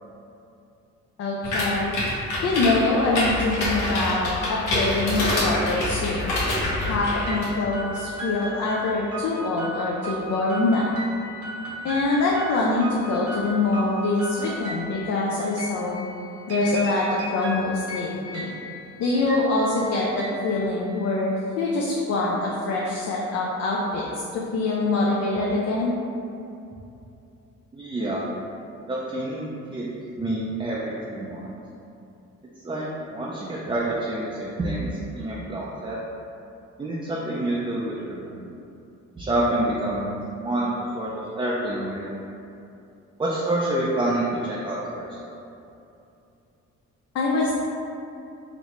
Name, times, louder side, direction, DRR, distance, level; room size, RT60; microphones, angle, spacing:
voice 1, 1.2-1.9 2.4-6.3 6.8-11.0 11.8-16.1 16.5-18.5 19.0-24.0 24.3-25.9 47.1-47.5, left 2 dB, 60° left, -4 dB, 0.5 m, -24 dB
sound 1, 1.4-7.5, left 1 dB, 85° left, 1.1 m, -26 dB
sound 2, 6.8-21.3, equal, 55° right, 0.9 m, -36 dB
voice 2, 27.7-28.2 28.9-29.9 30.2-31.5 32.6-34.9 35.1-36.0 36.8-38.4 39.2-42.1 43.2-45.2, right 1 dB, 15° right, -5 dB, 0.4 m, -27 dB
4.0 x 2.1 x 3.0 m, 2.7 s
cardioid pair, 90°, 30 cm